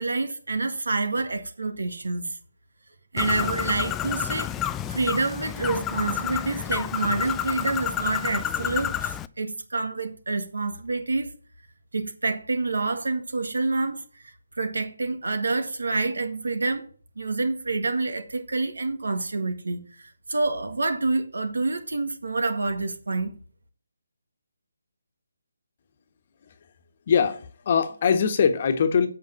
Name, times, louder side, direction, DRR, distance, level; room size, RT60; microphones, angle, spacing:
voice 1, 0.0-2.4 3.1-4.6 4.9-11.3 11.9-14.0 14.6-16.8 17.2-23.3, right 3 dB, 75° right, 1.8 m, -27 dB
Bird, 3.2-9.3, left 10 dB, 15° left, 0.4 m, -29 dB
voice 2, 27.1-29.1, left 6 dB, 40° left, 1.3 m, -22 dB
8.3 x 5.7 x 7.2 m
figure-of-eight pair, 150°, 0 cm